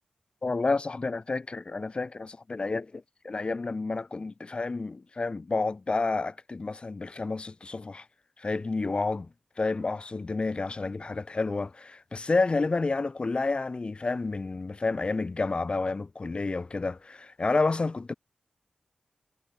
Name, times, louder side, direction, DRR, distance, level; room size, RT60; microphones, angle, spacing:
voice 1, 0.4-8.0 8.4-9.3 9.6-18.1, left 3 dB, 45° left, 4.3 m, -30 dB
cardioid pair, 55°, 2 cm